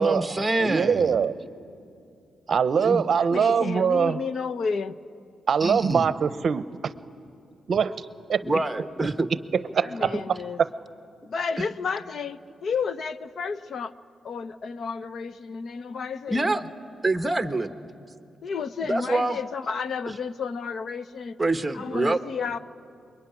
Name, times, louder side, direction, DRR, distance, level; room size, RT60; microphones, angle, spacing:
voice 1, 0.0-1.2 2.8-3.1 5.6-6.1 8.4-9.3 11.6-11.7 16.3-16.6 17.0-17.7 18.8-19.4 21.4-22.2, right 2 dB, 15° right, 9 dB, 1.1 m, -26 dB
voice 2, 0.6-1.3 2.5-4.2 5.5-6.9 7.7-7.9 8.3-8.4 9.0-9.1 9.7-10.1, right 6 dB, 55° right, 14 dB, 0.7 m, -23 dB
voice 3, 3.2-5.0 9.8-10.6 11.2-13.9 14.2-16.6 18.4-21.4 21.7-22.6, left 5 dB, 55° left, 14 dB, 0.7 m, -31 dB
26.5 x 22.5 x 9.9 m, 2.6 s
cardioid pair, 120°, 0 cm